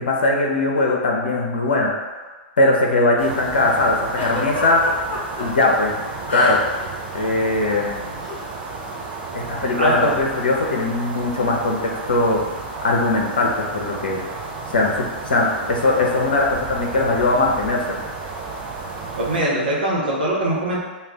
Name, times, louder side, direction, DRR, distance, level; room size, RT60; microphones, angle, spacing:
voice 1, 0.0-2.1 2.6-4.8 5.4-6.0 6.3-6.6 7.1-8.2 9.3-14.2 14.7-17.8, left 2 dB, 65° left, -1 dB, 0.5 m, -20 dB
sound 1, 3.2-19.4, right 3 dB, 30° right, 0.5 m, -33 dB
Giggle, 4.2-5.5 6.3-6.8 7.1-7.3 8.2-8.4, left 2 dB, 30° left, 0.7 m, -29 dB
voice 2, 9.8-10.1 19.2-20.8, right 1 dB, 65° right, -4 dB, 0.7 m, -22 dB
2.4 x 2.2 x 3.4 m, 1.3 s
figure-of-eight pair, 105°, 6 cm